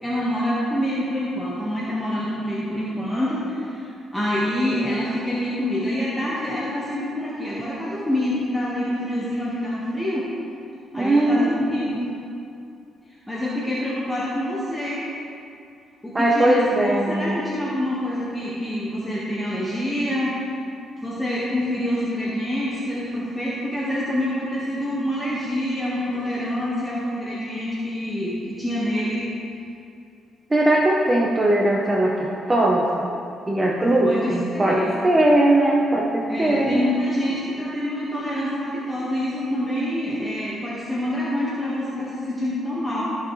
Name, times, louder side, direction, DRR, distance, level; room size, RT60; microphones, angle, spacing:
voice 1, 0.0-10.3 10.9-12.1 13.1-15.0 16.0-20.4 21.0-29.3 33.9-34.9 36.3-43.0, left 1 dB, 5° left, -8 dB, 1.6 m, -26 dB
voice 2, 10.9-11.5 16.1-17.4 30.5-33.1 33.5-36.8, right 1 dB, 20° right, -2 dB, 0.9 m, -19 dB
14.5 x 6.2 x 3.2 m, 2.6 s
cardioid pair, 90°, 0 cm